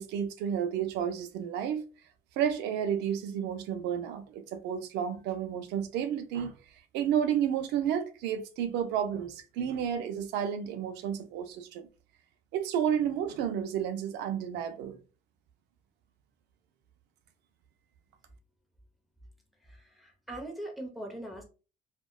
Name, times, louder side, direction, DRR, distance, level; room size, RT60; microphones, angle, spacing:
voice 1, 0.0-1.8 2.4-6.5 6.9-11.9 12.5-15.0, right 9 dB, 85° right, 0.5 m, -31 dB
voice 2, 19.6-21.4, right 1 dB, ahead, 0.8 m, -41 dB
2.8 x 2.2 x 2.3 m
cardioid pair, 110°, 17 cm